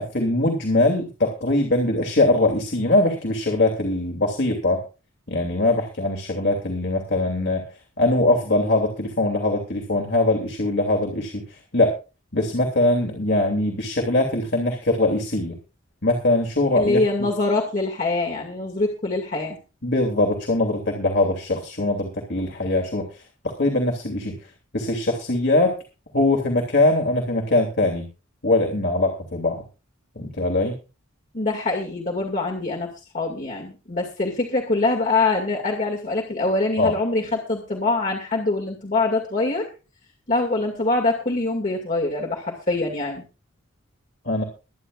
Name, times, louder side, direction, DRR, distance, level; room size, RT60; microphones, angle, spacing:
voice 1, 0.0-4.8 5.3-7.6 8.0-11.9 12.3-15.6 16.0-17.0 19.8-23.2 23.6-24.3 24.7-25.7 26.1-28.1 28.4-29.6 30.2-30.7 36.8-36.9 44.2-44.4, left 2 dB, 55° left, 2 dB, 2.8 m, -22 dB
voice 2, 16.7-19.6 31.3-39.7 40.3-43.2, left 2 dB, 40° left, 0 dB, 2.3 m, -24 dB
23.5 x 10.0 x 2.5 m, 0.32 s
head